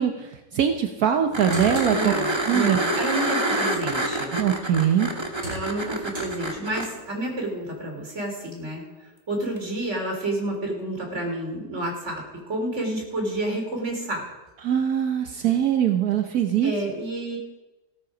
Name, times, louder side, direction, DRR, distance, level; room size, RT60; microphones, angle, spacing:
voice 1, 0.0-2.8 4.3-5.1 14.6-16.7, right 9 dB, 70° right, 6 dB, 1.3 m, -22 dB
sound 1, 1.1-2.7 4.7-7.0, right 1 dB, 90° right, 6.3 m, -41 dB
sound 2, 1.3-6.9 9.6-9.7, right 1 dB, 20° right, 1.5 m, -27 dB
voice 2, 1.9-4.3 5.5-8.8 9.3-14.2 16.6-17.4, right 1 dB, 45° right, 1 dB, 3.8 m, -29 dB
16.0 x 13.0 x 5.0 m, 1.1 s
omnidirectional pair, 1.7 m